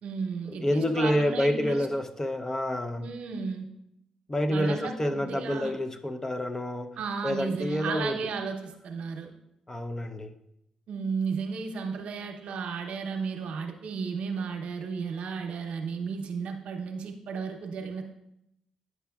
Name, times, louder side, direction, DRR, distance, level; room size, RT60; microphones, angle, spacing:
voice 1, 0.0-1.9 3.0-3.7 4.5-5.7 7.0-9.3 10.9-18.0, right 5 dB, 80° right, 3 dB, 0.8 m, -34 dB
voice 2, 0.6-3.1 4.3-7.0 7.2-8.2 9.7-10.3, left 1 dB, 25° left, 7 dB, 0.6 m, -28 dB
9.4 x 5.9 x 2.3 m, 0.83 s
cardioid pair, 65°, 2 cm